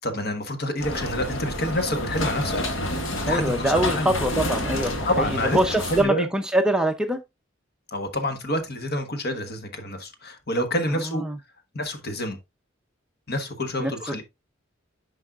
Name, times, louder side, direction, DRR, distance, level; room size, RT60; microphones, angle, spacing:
voice 1, 0.0-2.6 3.3-4.1 5.0-5.6 5.9-6.3 7.9-11.2 11.7-12.4 13.3-14.2, left 1 dB, 50° left, 1.3 m, -28 dB
sound 1, 0.8-6.0, left 1 dB, 75° left, 1.5 m, -29 dB
voice 2, 3.3-5.3 5.5-7.2 11.1-11.4 13.8-13.9, right 1 dB, 5° right, 0.5 m, -23 dB
9.7 x 5.4 x 2.4 m
head